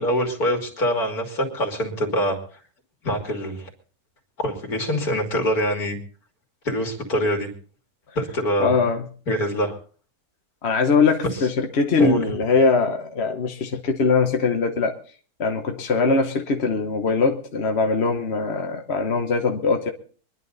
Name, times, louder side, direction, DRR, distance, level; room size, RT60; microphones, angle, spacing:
voice 1, 0.0-2.4 3.0-3.7 4.4-6.0 6.7-7.5 8.2-8.8 9.3-9.8 12.0-12.2, equal, 65° left, 3.4 m, -24 dB
voice 2, 8.6-9.0 10.6-14.9 15.4-19.9, left 4 dB, 45° left, 1.3 m, -21 dB
24.5 x 11.0 x 4.0 m
omnidirectional pair, 1.7 m